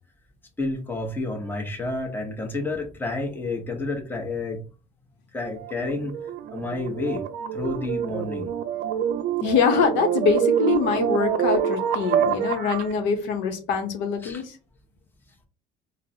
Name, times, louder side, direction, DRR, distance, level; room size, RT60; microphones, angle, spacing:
voice 1, 0.6-4.6 5.3-6.1 6.5-7.2 7.5-8.5 14.2-14.4, left 2 dB, 10° left, 2 dB, 0.8 m, -30 dB
sound 1, 5.6-12.9, right 9 dB, 60° right, 0.5 m, -26 dB
voice 2, 9.4-14.6, left 5 dB, 75° left, 5 dB, 0.7 m, -24 dB
3.9 x 2.0 x 2.7 m, 0.33 s
supercardioid pair, 110°, 19 cm